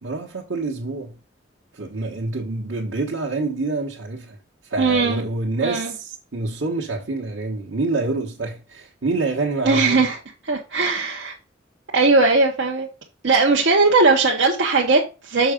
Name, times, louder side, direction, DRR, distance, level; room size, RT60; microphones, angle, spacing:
voice 1, 0.0-1.2 1.7-4.4 4.6-10.0, right 3 dB, 90° right, 1.2 m, -27 dB
voice 2, 4.8-5.2 5.6-5.9 9.6-10.2 10.5-11.4 11.9-12.9 13.2-15.5, right 3 dB, 70° right, 1.0 m, -18 dB
6.2 x 4.7 x 5.1 m
head